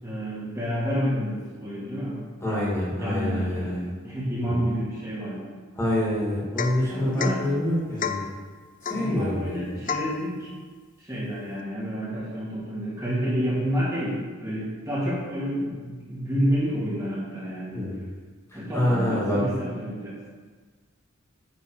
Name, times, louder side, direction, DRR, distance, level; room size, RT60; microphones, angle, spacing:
voice 1, 0.0-2.2 2.9-3.7 4.0-5.5 6.9-7.5 8.9-10.5 11.0-17.8 18.5-20.2, equal, 15° right, -9 dB, 2.3 m, -29 dB
voice 2, 2.4-3.9 4.4-4.6 5.8-8.2 8.8-9.8 17.7-18.0 18.5-19.4, left 1 dB, 15° left, -8 dB, 2.4 m, -26 dB
Domestic sounds home sounds / Chink clink / Drip, 6.6-6.9 7.2-7.4 8.0-8.3 8.8-9.1 9.9-10.2, left 7 dB, 40° left, 0.4 m, -30 dB
9.2 x 4.2 x 4.9 m, 1.5 s
head